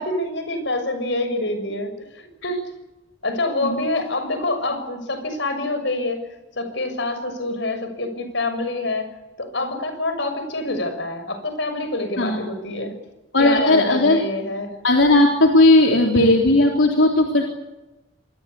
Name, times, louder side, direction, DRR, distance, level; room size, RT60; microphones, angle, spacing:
voice 1, 0.0-2.6 3.2-6.2 6.5-9.1 9.4-13.0 13.4-14.7, left 2 dB, 70° left, 9 dB, 6.7 m, -26 dB
voice 2, 13.3-14.2 14.8-17.4, left 2 dB, 85° left, 1 dB, 3.6 m, -16 dB
26.5 x 21.5 x 8.4 m, 1.0 s
head